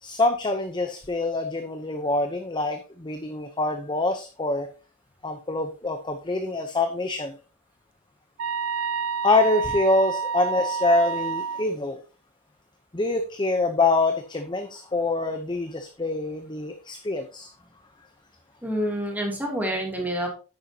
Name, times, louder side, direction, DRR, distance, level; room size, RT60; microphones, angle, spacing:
voice 1, 0.0-4.7 5.2-7.4 9.2-12.0 12.9-17.5, left 2 dB, 20° left, 6 dB, 0.8 m, -25 dB
sound 1, 8.4-11.7, right 6 dB, 70° right, 0.5 m, -29 dB
voice 2, 18.6-20.3, equal, 10° right, 0 dB, 2.8 m, -27 dB
10.5 x 8.9 x 2.9 m, 0.35 s
head